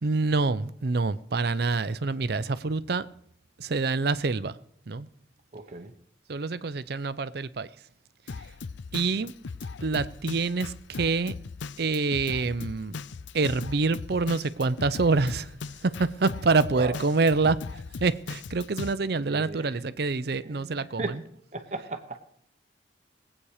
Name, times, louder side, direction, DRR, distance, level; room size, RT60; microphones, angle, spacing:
voice 1, 0.0-3.1 3.6-4.6 4.9-5.1 6.3-7.7 8.9-9.3 9.8-11.3 11.8-13.0 13.3-15.5 15.8-17.6 18.0-21.1, right 3 dB, 55° right, 0.6 m, -26 dB
voice 2, 5.5-5.9 9.0-9.3 16.7-17.0 19.3-20.1 20.4-21.2 21.5-22.2, right 2 dB, 35° right, 1.1 m, -37 dB
Drum kit, 8.3-18.9, left 4 dB, 70° left, 0.5 m, -39 dB
20.5 x 8.6 x 4.9 m
head